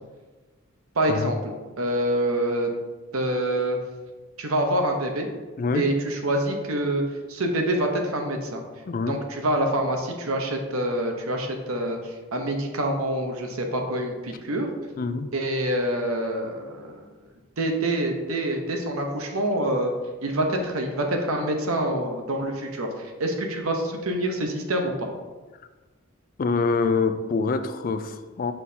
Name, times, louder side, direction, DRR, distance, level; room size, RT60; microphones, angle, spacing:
voice 1, 1.0-2.7 3.1-3.8 4.4-5.3 5.7-7.0 7.3-8.6 9.1-14.7 15.3-17.1 17.6-19.9 20.2-25.1, right 1 dB, 85° right, 3 dB, 0.9 m, -26 dB
voice 2, 8.9-9.2 15.0-15.3 26.4-28.5, left 4 dB, 40° left, 10 dB, 0.3 m, -25 dB
6.3 x 5.6 x 2.8 m, 1.3 s
head